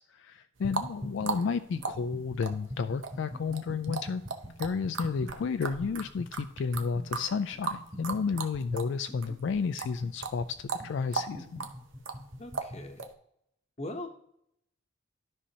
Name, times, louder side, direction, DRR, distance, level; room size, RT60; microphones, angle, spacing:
voice 1, 0.0-4.2 4.6-11.6, left 5 dB, 65° left, 10 dB, 0.3 m, -32 dB
sound 1, 0.6-12.9, equal, 35° right, 2.7 m, -43 dB
sound 2, 0.6-9.0 9.2-13.1, right 4 dB, 75° right, 0.9 m, -37 dB
voice 2, 12.4-13.0 13.8-14.2, left 1 dB, 35° left, 6 dB, 0.9 m, -40 dB
13.0 x 5.5 x 2.8 m, 0.74 s
head